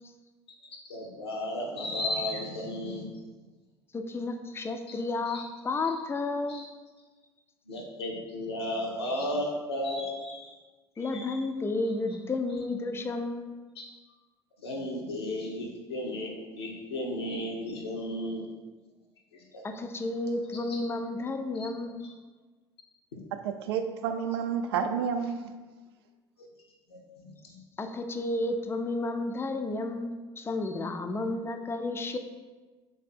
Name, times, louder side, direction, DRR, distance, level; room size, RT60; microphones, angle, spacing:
voice 1, 0.9-3.1 4.9-5.0 5.3-5.4 6.5-6.6 7.7-10.5 11.0-11.4 13.8-13.9 14.6-18.5 19.5-19.6 20.7-20.8 21.6-21.7 26.9-27.6, left 1 dB, 75° left, -1 dB, 0.7 m, -34 dB
voice 2, 3.9-6.7 11.0-13.5 19.6-22.1 27.8-32.2, left 2 dB, 15° left, 6 dB, 0.4 m, -32 dB
voice 3, 23.3-25.5, right 7 dB, 70° right, 7 dB, 0.4 m, -30 dB
3.3 x 3.3 x 4.2 m, 1.3 s
figure-of-eight pair, 60°, 14 cm